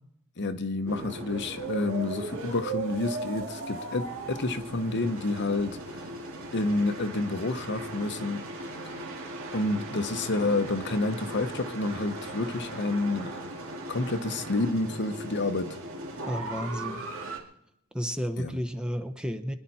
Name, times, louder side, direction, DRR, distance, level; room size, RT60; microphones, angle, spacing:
voice 1, 0.4-6.1 6.5-8.5 8.8-8.9 9.5-13.4 13.9-15.8 18.4-18.6, left 2 dB, 55° left, 1.0 m, -29 dB
sound 1, 0.9-17.4, right 2 dB, 65° right, 2.5 m, -38 dB
voice 2, 16.3-17.0 17.9-19.5, equal, 5° right, 0.9 m, -32 dB
25.5 x 11.0 x 4.3 m
head